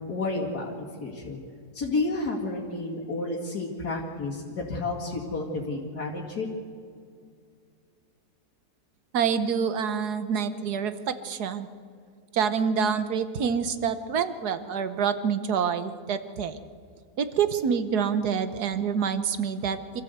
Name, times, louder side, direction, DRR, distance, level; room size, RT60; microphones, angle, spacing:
voice 1, 0.1-1.4 1.7-6.5, left 2 dB, 90° left, -3 dB, 2.7 m, -31 dB
voice 2, 9.1-11.7 12.3-16.6 17.2-20.0, right 7 dB, 85° right, 11 dB, 1.6 m, -27 dB
25.5 x 14.0 x 8.0 m, 2.3 s
omnidirectional pair, 1.6 m